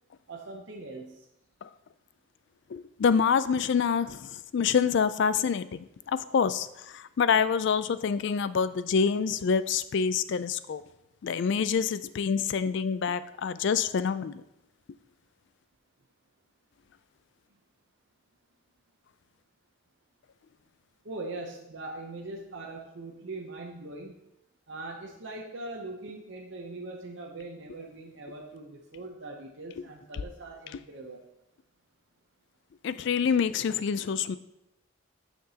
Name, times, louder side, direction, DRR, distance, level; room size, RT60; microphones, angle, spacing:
voice 1, 0.3-1.2 21.0-24.2 24.7-31.2, right 2 dB, 55° right, 0 dB, 0.7 m, -41 dB
voice 2, 2.7-4.2 4.5-5.8 6.1-6.7 7.2-10.8 11.2-14.3 32.8-34.4, left 6 dB, 55° left, 15 dB, 0.3 m, -26 dB
9.3 x 5.9 x 2.8 m, 0.87 s
head